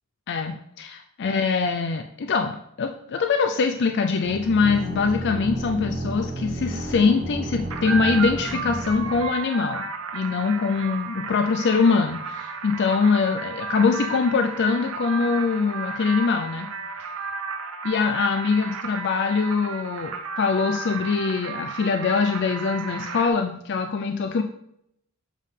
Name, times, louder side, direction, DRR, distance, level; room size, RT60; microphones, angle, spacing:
voice 1, 0.3-9.8 10.1-16.7 17.8-24.4, left 5 dB, 55° left, 6 dB, 0.4 m, -23 dB
sound 1, 4.2-9.2, right 1 dB, 45° right, 1.6 m, -32 dB
sound 2, 7.7-23.3, right 5 dB, 70° right, 0.8 m, -33 dB
7.4 x 3.6 x 5.5 m, 0.75 s
head